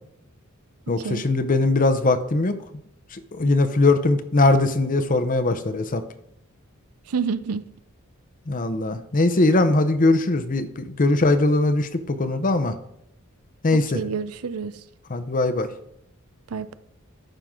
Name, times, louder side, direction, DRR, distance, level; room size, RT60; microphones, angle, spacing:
voice 1, 0.9-2.6 3.1-6.0 8.5-12.8 13.6-14.0 15.1-15.7, left 2 dB, 40° left, 0.7 m, -21 dB
voice 2, 7.1-7.6 13.7-14.8 16.5-16.7, right 5 dB, 85° right, 0.5 m, -28 dB
14.0 x 5.8 x 3.7 m
head